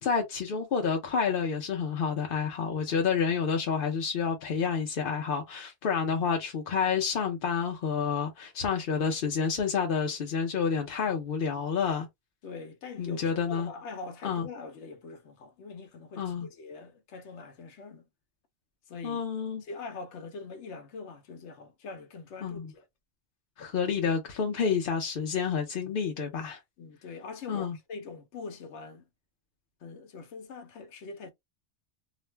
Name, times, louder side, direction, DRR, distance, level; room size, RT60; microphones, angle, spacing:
voice 1, 0.0-12.1 13.0-13.7 14.2-14.5 16.2-16.5 19.0-19.6 22.4-22.7 23.6-26.6 27.5-27.8, left 6 dB, 60° left, 0.8 m, -29 dB
voice 2, 12.4-18.1 18.9-19.2 19.6-22.9 26.8-29.1 29.8-31.3, left 4 dB, 85° left, 1.0 m, -43 dB
2.4 x 2.1 x 3.2 m
omnidirectional pair, 1.2 m